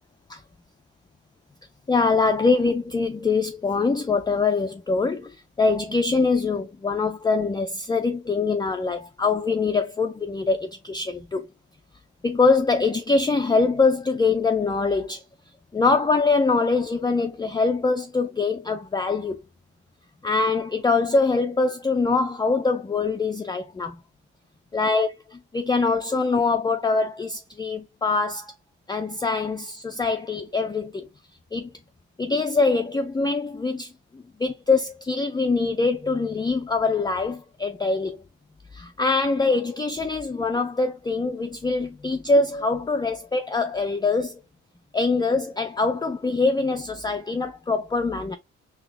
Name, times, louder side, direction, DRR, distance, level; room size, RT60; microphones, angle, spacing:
voice 1, 1.9-11.5 12.2-15.2 15.7-19.4 20.2-24.0 24.7-28.5 28.9-31.1 31.5-31.7 32.2-38.2 38.7-44.4 44.9-48.4, left 3 dB, 15° left, 0.4 m, -23 dB
3.9 x 2.8 x 3.2 m
cardioid pair, 90°, 30 cm